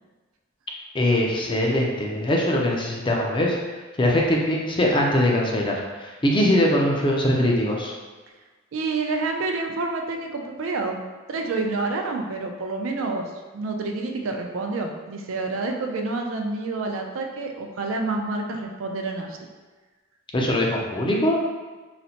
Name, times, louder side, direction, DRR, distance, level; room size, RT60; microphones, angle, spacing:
voice 1, 0.9-3.6 4.0-7.9 20.3-21.4, left 1 dB, 25° left, -2 dB, 0.5 m, -22 dB
voice 2, 8.7-11.0 11.3-19.4, right 3 dB, 75° right, 2 dB, 0.4 m, -28 dB
4.0 x 2.1 x 2.8 m, 1.3 s
head